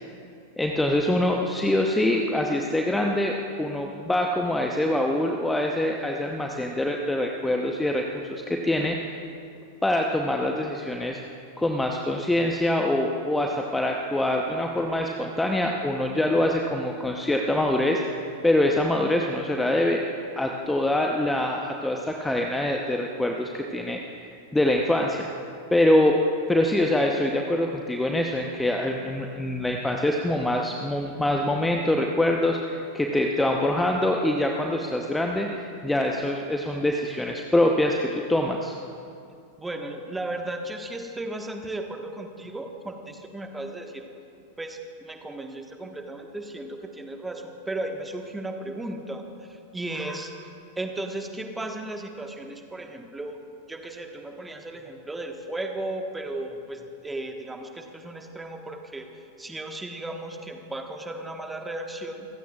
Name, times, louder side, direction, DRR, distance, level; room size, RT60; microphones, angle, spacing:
voice 1, 0.6-8.0 8.3-9.0 9.8-11.2 11.6-18.0 18.4-20.0 20.4-25.3 25.7-26.2 26.5-38.7 50.0-50.2, left 1 dB, 5° left, 2 dB, 0.9 m, -24 dB
voice 2, 39.6-44.0 44.6-49.2 49.5-50.3 50.7-53.4 53.7-62.3, right 2 dB, 10° right, 4 dB, 1.4 m, -35 dB
28.0 x 15.5 x 2.4 m, 2.6 s
figure-of-eight pair, 90°, 0 cm